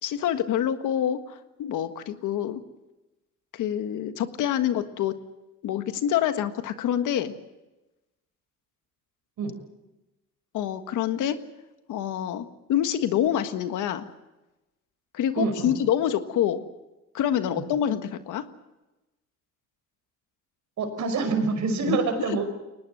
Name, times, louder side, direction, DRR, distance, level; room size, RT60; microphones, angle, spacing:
voice 1, 0.0-2.6 3.5-5.2 5.6-7.3 10.5-11.4 11.9-14.1 15.1-16.6 17.1-18.4 21.9-22.0 22.3-22.4, left 10 dB, 85° left, 9 dB, 1.6 m, -26 dB
voice 2, 15.4-15.8 17.5-17.6 20.8-22.5, right 4 dB, 70° right, 7 dB, 5.3 m, -26 dB
23.0 x 19.0 x 7.8 m, 1.0 s
cardioid pair, 90°, 30 cm